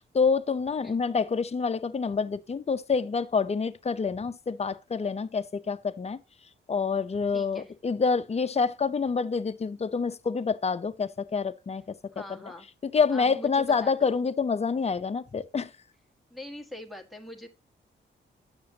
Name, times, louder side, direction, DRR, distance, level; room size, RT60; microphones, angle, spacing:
voice 1, 0.1-6.2 6.7-11.9 12.8-15.7, left 5 dB, 30° left, 0.6 m, -27 dB
voice 2, 7.3-7.7 12.1-12.7 13.1-14.1 16.3-17.5, left 1 dB, ahead, 1.5 m, -42 dB
9.5 x 6.8 x 2.8 m
cardioid pair, 105°, 21 cm